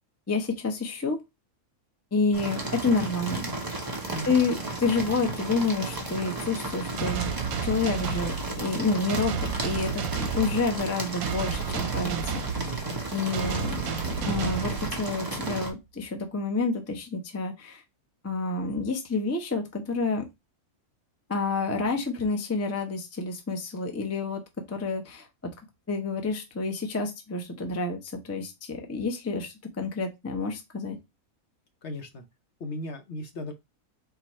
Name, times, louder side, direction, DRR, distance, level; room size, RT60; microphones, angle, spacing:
voice 1, 0.3-1.2 2.1-3.5 4.2-7.3 7.6-12.4 13.1-13.8 14.2-17.8 18.2-20.3 21.3-24.4 24.7-25.3 25.9-31.0, left 4 dB, 15° left, 0.5 m, -29 dB
sound 1, 2.3-15.7, right 2 dB, 20° right, 0.7 m, -34 dB
sound 2, 7.0-15.4, right 7 dB, 90° right, 1.1 m, -33 dB
voice 2, 31.8-32.2 32.6-33.5, left 1 dB, 60° left, 0.9 m, -36 dB
4.6 x 2.5 x 4.1 m
omnidirectional pair, 1.5 m